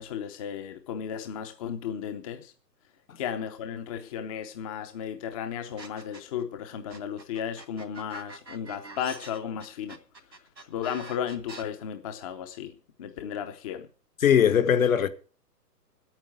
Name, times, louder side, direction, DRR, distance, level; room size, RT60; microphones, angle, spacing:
voice 1, 0.0-2.5 3.2-10.0 10.7-12.7 13.0-13.9, left 8 dB, 20° left, 0.8 m, -34 dB
sound 1, 5.8-6.4 6.9-11.6, right 3 dB, 85° right, 2.5 m, -45 dB
voice 2, 14.2-15.1, left 8 dB, 55° left, 1.4 m, -20 dB
10.5 x 9.0 x 7.8 m
figure-of-eight pair, 125°, 50 cm